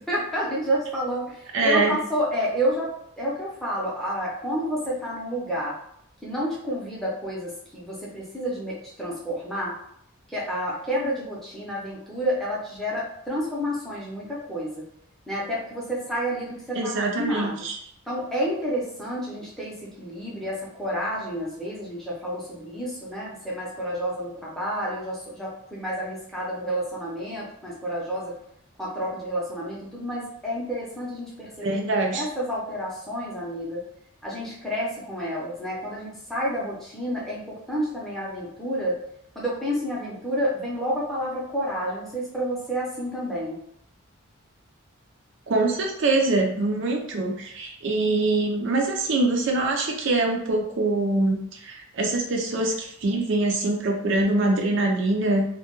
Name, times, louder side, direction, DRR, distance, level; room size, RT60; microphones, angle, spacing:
voice 1, 0.1-5.8 6.2-9.8 10.3-14.8 15.3-16.9 17.2-17.6 18.1-28.4 28.8-31.8 32.1-33.8 34.2-39.0 39.4-43.6, equal, ahead, -6 dB, 0.6 m, -30 dB
voice 2, 1.5-2.0 16.8-17.7 31.6-32.2 45.5-55.4, right 2 dB, 60° right, 1 dB, 0.4 m, -24 dB
2.2 x 2.2 x 2.9 m, 0.71 s
head